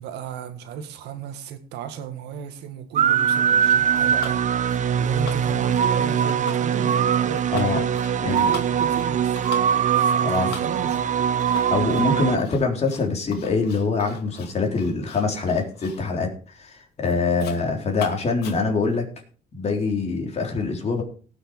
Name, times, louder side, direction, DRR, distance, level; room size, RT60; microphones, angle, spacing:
voice 1, 0.0-7.8 8.3-11.2, right 8 dB, 85° right, 1.9 m, -35 dB
sound 1, 3.0-12.4, right 8 dB, 45° right, 0.8 m, -22 dB
sound 2, 4.2-4.4 4.7-4.9 5.3-6.0 6.3-7.0 7.4-16.1 16.5-16.7 17.1-17.6 17.9-18.9, left 8 dB, 70° left, 2.3 m, -42 dB
voice 2, 7.5-7.9 8.2-8.5 10.2-10.5 11.5-19.0 19.5-21.0, left 4 dB, 40° left, 3.7 m, -24 dB
18.0 x 6.5 x 4.8 m
cardioid pair, 110°, 17 cm